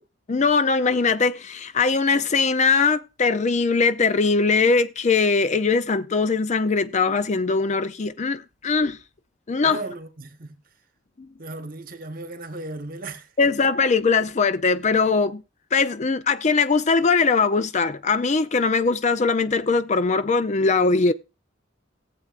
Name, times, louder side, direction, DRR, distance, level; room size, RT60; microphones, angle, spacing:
voice 1, 0.3-9.0 9.5-9.8 11.2-11.3 13.4-15.4 15.7-21.1, left 4 dB, 35° left, 0.5 m, -21 dB
voice 2, 9.6-10.5 11.4-13.7, right 2 dB, 45° right, 1.2 m, -36 dB
18.0 x 7.7 x 2.5 m
head